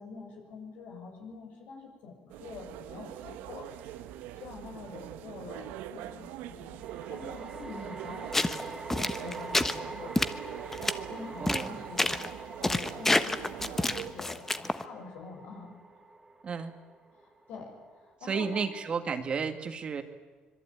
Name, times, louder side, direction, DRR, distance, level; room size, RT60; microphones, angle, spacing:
voice 1, 0.0-3.7 4.3-6.8 7.1-8.8 9.2-10.1 11.0-12.2 12.4-15.8 17.1-18.7, left 4 dB, 70° left, 2 dB, 7.8 m, -46 dB
sound 1, 2.3-14.1, right 12 dB, 90° right, 1.4 m, -43 dB
sound 2, 3.8-3.9 6.8-18.1, right 2 dB, 15° right, 2.5 m, -46 dB
sound 3, 8.3-8.6 8.9-9.8 10.1-10.3 10.7-10.9 11.4-11.7 12.0-12.3 12.6-14.8, left 2 dB, 10° left, 1.2 m, -27 dB
voice 2, 11.4-11.8 16.4-16.7 18.3-20.0, right 5 dB, 35° right, 8 dB, 2.1 m, -32 dB
25.5 x 23.0 x 9.4 m, 1.4 s
cardioid pair, 125°, 3 cm